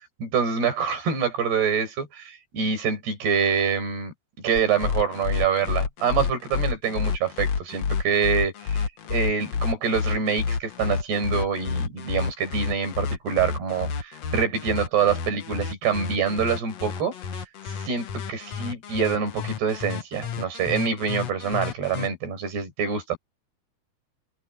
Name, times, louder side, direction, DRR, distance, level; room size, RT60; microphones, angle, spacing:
voice 1, 0.2-4.1 4.4-8.9 9.1-17.1 17.7-23.2, right 6 dB, 75° right, 7.3 m, -26 dB
sound 1, 4.5-22.1, left 6 dB, 55° left, 2.1 m, -29 dB
omnidirectional pair, 4.7 m